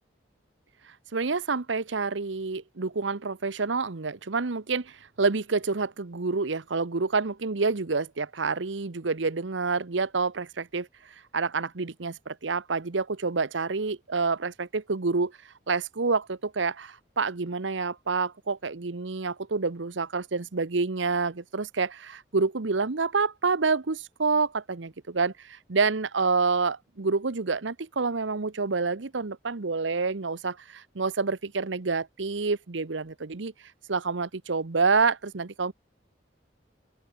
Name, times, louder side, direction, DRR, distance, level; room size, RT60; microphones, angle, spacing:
voice 1, 0.9-15.3 15.7-33.5 33.9-35.7, right 4 dB, 80° right, 0.9 m, -28 dB
open air
head